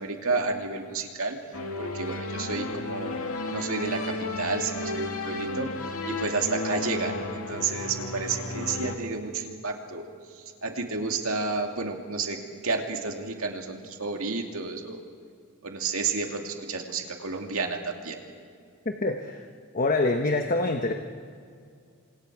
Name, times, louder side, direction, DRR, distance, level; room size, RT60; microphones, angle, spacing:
voice 1, 0.0-1.4 1.8-3.2 3.5-5.7 6.1-10.1 10.6-12.4 12.6-15.0 15.6-18.2, right 4 dB, 70° right, 3 dB, 2.5 m, -31 dB
sound 1, 1.5-8.9, left 2 dB, 75° left, 2.3 m, -33 dB
voice 2, 18.8-19.5 19.7-20.9, left 2 dB, 40° left, 4 dB, 1.2 m, -25 dB
29.5 x 26.5 x 4.8 m, 2.3 s
head